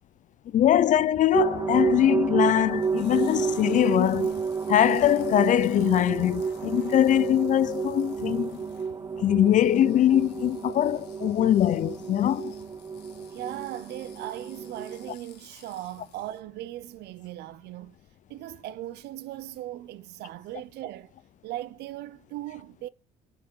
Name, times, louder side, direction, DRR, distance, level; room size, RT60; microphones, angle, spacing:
voice 1, 0.5-4.4 4.7-8.6 9.2-12.5, left 11 dB, 50° left, 0.5 m, -22 dB
sound 1, 1.3-15.1, right 5 dB, 20° right, 0.5 m, -30 dB
sound 2, 2.6-16.4, left 9 dB, 80° left, 1.7 m, -54 dB
voice 2, 13.3-18.0 18.3-21.1 21.4-22.9, right 14 dB, 75° right, 0.6 m, -38 dB
11.5 x 4.8 x 5.3 m
cardioid pair, 110°, 17 cm